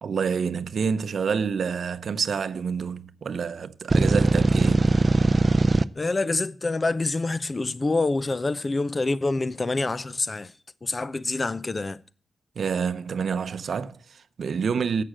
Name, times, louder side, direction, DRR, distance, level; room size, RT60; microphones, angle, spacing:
voice 1, 0.0-4.9 12.6-15.0, right 6 dB, 70° right, 0.7 m, -28 dB
sound 1, 3.9-5.8, right 3 dB, 35° right, 0.5 m, -20 dB
voice 2, 5.9-10.5 10.8-12.0, left 3 dB, 30° left, 0.6 m, -26 dB
11.5 x 7.7 x 7.4 m
wide cardioid pair, 110°, 0 cm